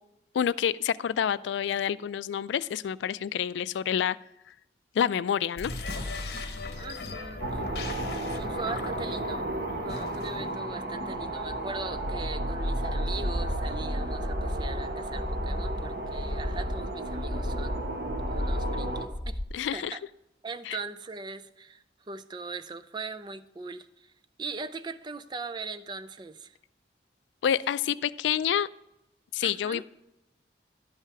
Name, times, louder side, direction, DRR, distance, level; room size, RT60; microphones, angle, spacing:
voice 1, 0.3-4.2 5.0-5.7 19.5-20.0 20.7-20.8 27.4-28.7 29.3-29.8, left 8 dB, 90° left, 18 dB, 0.3 m, -28 dB
sound 1, 5.5-10.6, left 3 dB, 60° left, 1.1 m, -38 dB
voice 2, 6.8-7.6 8.2-9.5 9.8-19.4 19.7-20.0 20.4-24.1 24.4-26.6 29.4-29.8, right 4 dB, 25° right, 12 dB, 0.4 m, -40 dB
sound 2, 7.4-19.1, right 1 dB, 60° right, 1.0 m, -33 dB
sound 3, 13.4-19.5, left 1 dB, 15° left, 0.7 m, -34 dB
11.5 x 5.7 x 4.7 m, 0.90 s
head